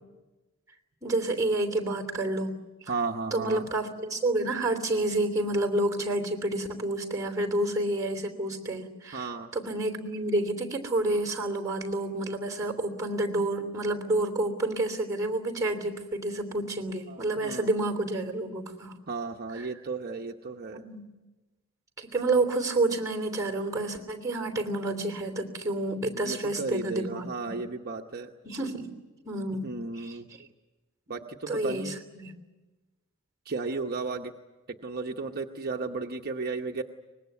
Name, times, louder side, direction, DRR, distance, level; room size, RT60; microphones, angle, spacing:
voice 1, 1.0-2.6 3.3-9.2 9.5-18.9 20.7-21.0 22.0-27.6 28.4-28.9 29.2-30.2 31.5-32.3, right 2 dB, 15° right, 5 dB, 3.1 m, -29 dB
voice 2, 2.9-3.7 9.1-9.5 17.1-17.7 19.1-20.8 26.2-28.3 29.6-30.3 31.1-31.9 33.4-34.3 34.7-36.8, right 3 dB, 45° right, 2 dB, 0.9 m, -34 dB
24.5 x 20.5 x 9.5 m, 1.2 s
head